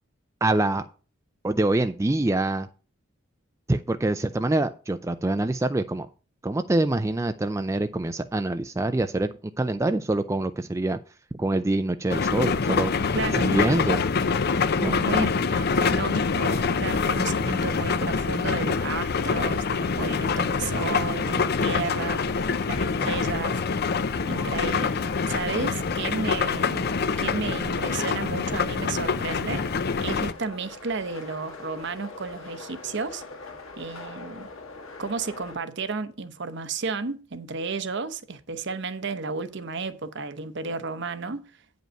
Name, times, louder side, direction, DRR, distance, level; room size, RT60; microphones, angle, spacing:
voice 1, 0.4-0.8 1.4-2.7 3.7-6.1 6.4-11.0 11.3-12.9 13.3-14.0 14.8-15.0, right 2 dB, 15° right, 0.4 m, -25 dB
sound 1, 12.1-30.3, left 5 dB, 50° left, 0.5 m, -25 dB
voice 2, 13.1-13.5 14.8-23.6 24.3-26.9 27.2-29.7 30.0-33.2 33.8-34.5 35.0-41.5, right 4 dB, 55° right, 0.8 m, -33 dB
sound 2, 21.0-35.6, left 3 dB, 80° left, 1.9 m, -42 dB
9.1 x 5.3 x 6.3 m
head